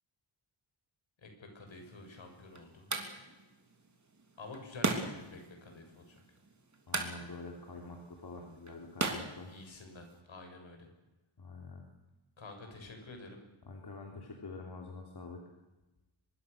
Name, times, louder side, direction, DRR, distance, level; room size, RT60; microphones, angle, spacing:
voice 1, 1.2-2.9 4.4-6.2 9.0-10.9 12.4-13.4, left 2 dB, 75° left, 4 dB, 6.3 m, -49 dB
sound 1, 1.7-10.2, right 3 dB, 35° right, 3.3 m, -40 dB
voice 2, 6.9-9.5 11.4-11.8 13.7-15.4, left 3 dB, 55° left, 1 dB, 3.4 m, -46 dB
24.5 x 22.5 x 6.7 m, 1.1 s
wide cardioid pair, 130°, 47 cm